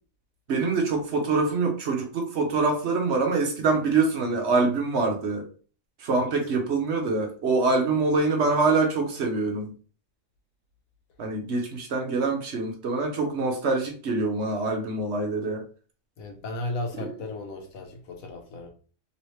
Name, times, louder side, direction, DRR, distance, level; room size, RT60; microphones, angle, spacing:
voice 1, 0.5-5.4 6.0-9.7 11.2-15.6, right 3 dB, 60° right, 0.9 m, -25 dB
voice 2, 16.2-18.7, left 2 dB, 85° left, 1.2 m, -35 dB
3.1 x 2.9 x 3.1 m
omnidirectional pair, 1.4 m